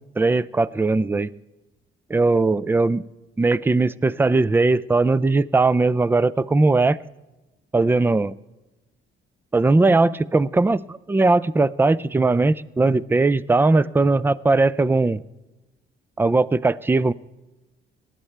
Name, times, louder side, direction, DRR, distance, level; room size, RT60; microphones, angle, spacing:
voice 1, 0.2-1.3 2.1-3.0 3.4-7.0 7.7-8.3 9.5-15.2 16.2-17.1, right 3 dB, 10° right, 20 dB, 0.4 m, -19 dB
18.5 x 11.5 x 3.3 m, 1.1 s
cardioid pair, 90°, 20 cm